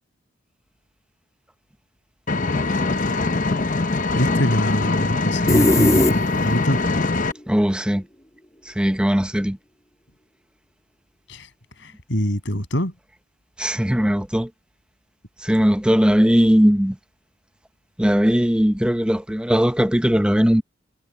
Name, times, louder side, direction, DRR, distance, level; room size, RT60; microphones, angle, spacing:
Engine, 2.3-7.3, left 3 dB, 45° left, 0.8 m, -22 dB
voice 1, 4.1-6.8 11.3-11.5 11.8-12.9, equal, 65° left, 6.8 m, -24 dB
sound 1, 5.5-6.7, left 1 dB, 20° left, 2.4 m, -18 dB
voice 2, 7.5-8.0 8.7-9.6 13.6-14.5 15.4-17.0 18.0-20.6, equal, 5° right, 0.7 m, -19 dB
head